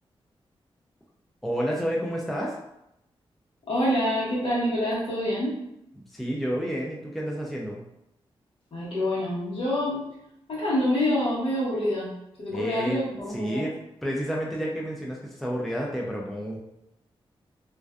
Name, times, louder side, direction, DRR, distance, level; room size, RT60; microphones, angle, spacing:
voice 1, 1.4-2.6 6.1-7.8 12.5-13.0 13.3-13.7 14.0-16.6, equal, ahead, -3 dB, 0.3 m, -30 dB
voice 2, 3.7-5.6 8.7-10.0 10.5-12.1 12.4-13.7, left 1 dB, 65° left, -7 dB, 1.1 m, -26 dB
2.4 x 2.2 x 2.3 m, 0.83 s
wide cardioid pair, 110°, 10 cm